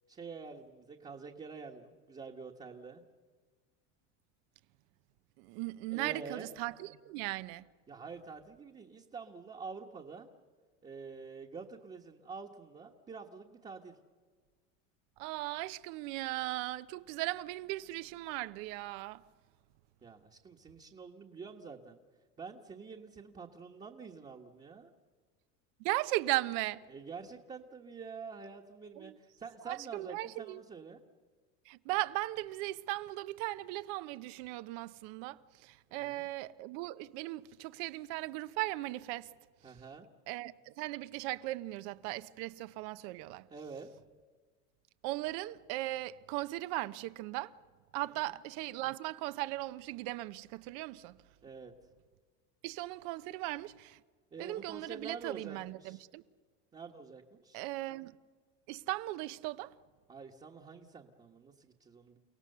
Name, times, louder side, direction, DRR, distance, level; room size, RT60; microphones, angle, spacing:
voice 1, 0.1-3.0 5.9-6.5 7.9-10.3 10.8-14.0 20.0-22.0 22.4-24.9 26.9-31.0 35.9-36.3 39.6-40.1 43.5-43.9 48.0-48.4 51.4-51.7 54.3-56.0 56.7-57.6 60.1-62.2, right 5 dB, 20° right, 1.4 m, -47 dB
voice 2, 5.4-7.6 15.2-19.2 25.8-26.8 29.0-29.1 29.7-30.6 31.7-39.3 40.3-43.5 45.0-47.5 47.9-51.2 52.6-54.0 54.4-56.2 57.5-58.1 58.7-59.7, right 18 dB, 65° right, 1.0 m, -37 dB
29.5 x 17.5 x 6.8 m
supercardioid pair, 135°, 35 cm